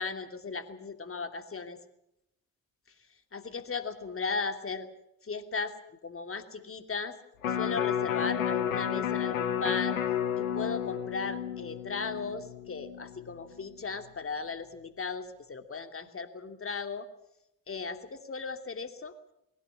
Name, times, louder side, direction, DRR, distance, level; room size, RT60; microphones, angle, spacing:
voice 1, 0.0-1.8 3.3-4.9 5.2-5.8 6.0-7.2 7.5-10.0 10.4-17.1 17.7-19.1, left 4 dB, 35° left, 7 dB, 2.9 m, -36 dB
Electric guitar, 7.4-13.6 14.0-14.1, left 9 dB, 90° left, 1.1 m, -32 dB
20.5 x 18.0 x 8.6 m, 0.81 s
hypercardioid pair, 50°, 40 cm